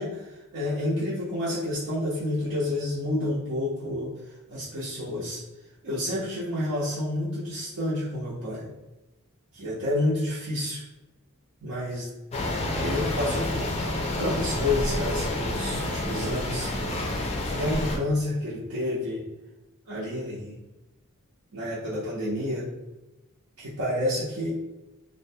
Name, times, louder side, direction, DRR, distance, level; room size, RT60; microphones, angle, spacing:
voice 1, 0.0-4.1 4.5-5.4 5.8-8.7 9.5-10.8 11.6-12.1 12.8-13.6 14.2-16.7 17.6-19.2 19.9-20.5 21.5-22.6 23.6-24.5, left 1 dB, 75° right, -9 dB, 0.7 m, -29 dB
sound 1, 12.3-18.0, left 1 dB, 30° left, 0.4 m, -29 dB
2.5 x 2.1 x 2.6 m, 1.1 s
head